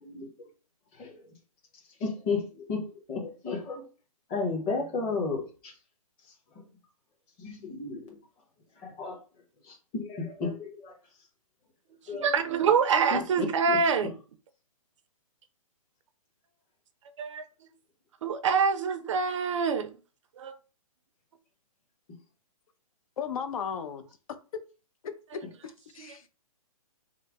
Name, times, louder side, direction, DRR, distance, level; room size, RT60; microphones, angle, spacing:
voice 1, 0.0-0.5 0.9-1.2 2.0-3.8 4.3-5.5 7.4-8.2 8.8-9.2 9.6-10.9 12.1-12.3 13.1-14.1, left 4 dB, 20° left, 0.9 m, -33 dB
voice 2, 12.2-14.1 17.2-17.4 18.2-19.9 20.4-20.5 26.0-26.3, right 5 dB, 55° right, 0.5 m, -26 dB
voice 3, 23.2-24.1 25.0-26.2, left 7 dB, 65° left, 0.6 m, -36 dB
3.2 x 2.0 x 3.4 m
hypercardioid pair, 150°, 19 cm